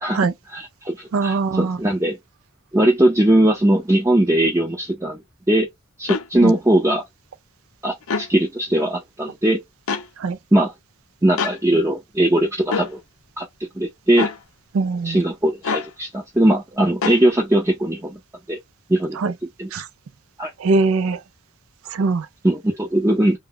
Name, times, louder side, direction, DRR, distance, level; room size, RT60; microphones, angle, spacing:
voice 1, 0.5-2.2 2.7-5.2 5.5-5.7 6.0-7.0 7.8-9.6 10.5-10.7 11.2-13.0 13.4-13.5 13.8-14.3 15.0-18.2 18.5-18.6 18.9-19.3 19.6-19.7 20.4-20.5 22.4-23.4, right 1 dB, 15° right, 0.6 m, -19 dB
voice 2, 1.1-1.8 6.4-6.5 10.2-10.4 14.7-15.2 19.2-19.3 19.7-19.9 20.6-21.2 21.9-22.3, right 3 dB, 80° right, 0.4 m, -21 dB
sound 1, 6.1-6.3 8.0-8.3 9.9-10.1 11.4-11.6 12.7-12.9 14.1-14.4 15.6-15.9 17.0-17.2, left 5 dB, 80° left, 0.5 m, -25 dB
2.3 x 2.1 x 3.5 m
head